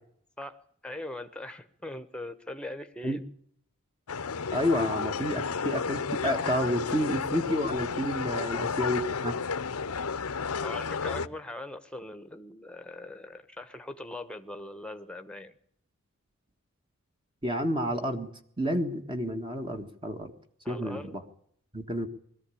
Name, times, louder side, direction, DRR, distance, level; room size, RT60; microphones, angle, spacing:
voice 1, 0.4-3.2 10.6-15.6 20.6-21.1, left 1 dB, 5° left, 9 dB, 1.2 m, -41 dB
sound 1, 4.1-11.3, left 5 dB, 80° left, 0.8 m, -32 dB
voice 2, 4.5-9.4 17.4-18.3 18.6-20.3 20.7-21.2 21.7-22.1, equal, 20° right, 5 dB, 1.6 m, -30 dB
21.5 x 14.0 x 8.6 m, 0.68 s
head